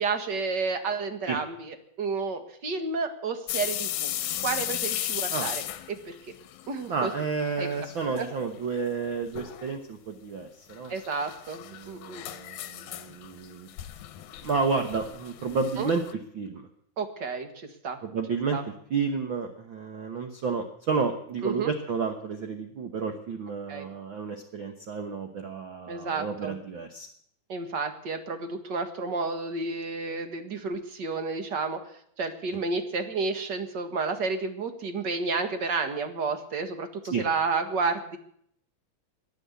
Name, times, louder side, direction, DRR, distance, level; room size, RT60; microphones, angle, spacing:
voice 1, 0.0-4.1 4.4-5.6 6.1-6.2 6.7-7.1 7.6-7.7 8.1-8.3 10.9-12.2 15.8-15.9 17.0-18.0 18.5-18.6 21.4-21.7 23.7-23.9 25.9-26.6 27.5-31.8 32.2-38.2, right 4 dB, 40° right, 8 dB, 1.7 m, -31 dB
sound 1, 3.5-7.3 7.6-8.3 8.6-8.7 9.3-9.7 10.7-16.1, left 12 dB, 70° left, 2.2 m, -35 dB
voice 2, 6.9-10.9 11.8-13.7 14.4-16.0 16.3-16.7 18.0-18.6 18.9-27.1 37.1-37.2, right 5 dB, 60° right, 6 dB, 1.4 m, -31 dB
21.5 x 8.1 x 8.2 m, 0.66 s
omnidirectional pair, 3.8 m